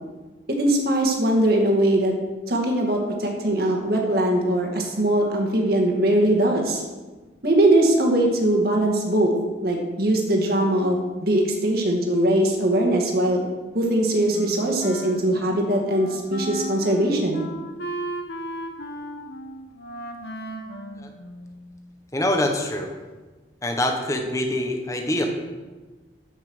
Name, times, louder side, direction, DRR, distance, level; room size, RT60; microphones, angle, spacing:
voice 1, 0.5-2.1 2.5-6.8 7.4-9.3 9.6-13.4 13.7-17.4, right 1 dB, 50° right, 1 dB, 2.0 m, -21 dB
Wind instrument woodwind instrument, 14.3-21.8, right 1 dB, 55° left, 1.2 m, -35 dB
voice 2, 22.1-22.9 23.6-25.2, left 1 dB, 15° left, 3 dB, 1.2 m, -24 dB
13.5 x 5.7 x 6.2 m, 1.3 s
head